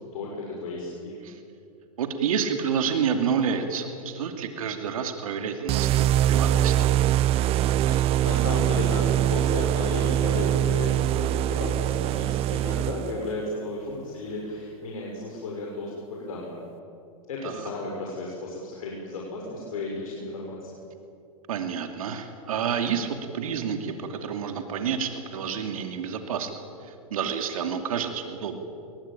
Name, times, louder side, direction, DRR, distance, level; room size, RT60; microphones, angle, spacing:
voice 1, 0.1-1.2 7.8-16.6 17.3-20.7, left 2 dB, 75° left, -2 dB, 6.4 m, -34 dB
voice 2, 2.0-6.9 17.4-17.7 21.5-26.5 26.8-28.6, right 7 dB, 80° right, 6 dB, 2.7 m, -29 dB
sound 1, 5.7-13.3, right 12 dB, 35° right, 0.5 m, -23 dB
24.0 x 22.5 x 9.1 m, 2.6 s
hypercardioid pair, 115°, 18 cm